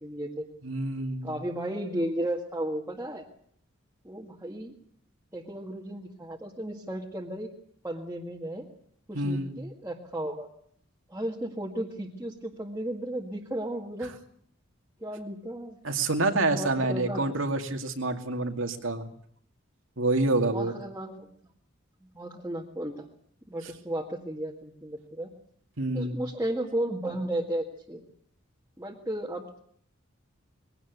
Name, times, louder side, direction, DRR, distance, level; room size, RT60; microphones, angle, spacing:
voice 1, 0.0-0.4 1.2-3.2 4.0-4.7 5.3-7.5 7.8-8.6 9.1-10.5 11.1-14.1 15.0-15.8 16.5-17.3 20.5-21.3 22.1-23.1 23.5-25.3 25.9-28.0 28.8-29.6, right 1 dB, 15° right, -3 dB, 1.9 m, -34 dB
voice 2, 0.6-1.3 9.1-9.6 15.8-19.1 20.0-20.7 25.8-26.2, right 2 dB, 75° right, 6 dB, 2.4 m, -27 dB
21.5 x 17.0 x 8.1 m, 0.62 s
head